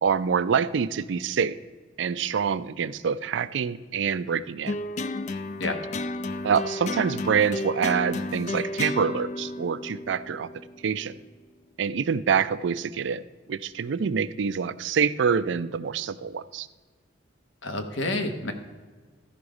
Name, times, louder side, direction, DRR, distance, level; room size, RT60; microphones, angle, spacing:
voice 1, 0.0-1.6 2.0-4.7 6.4-10.5 10.8-11.1 11.8-13.2 13.5-16.7, right 6 dB, 75° right, 14 dB, 0.4 m, -26 dB
sound 1, 4.7-11.1, left 2 dB, 40° left, 0.3 m, -32 dB
voice 2, 17.6-18.5, left 2 dB, 85° left, 6 dB, 1.1 m, -29 dB
13.0 x 5.1 x 4.8 m, 1.4 s
head